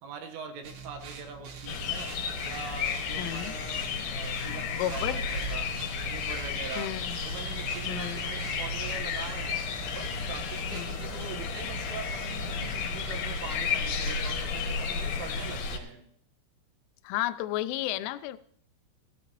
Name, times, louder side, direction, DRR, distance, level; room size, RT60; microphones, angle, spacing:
voice 1, 0.0-2.1 2.4-5.7 6.1-6.9 7.2-9.6 10.0-16.0, right 5 dB, 75° right, 4 dB, 3.8 m, -43 dB
sound 1, 0.6-15.1, right 3 dB, 60° right, 3.5 m, -45 dB
sound 2, 1.7-15.8, left 5 dB, 65° left, 3.7 m, -33 dB
voice 2, 3.2-3.5 4.7-5.2 6.8-7.2 7.9-8.2 10.7-11.0 17.0-18.4, left 14 dB, 80° left, 12 dB, 2.9 m, -33 dB
16.0 x 15.5 x 3.0 m, 0.64 s
omnidirectional pair, 5.8 m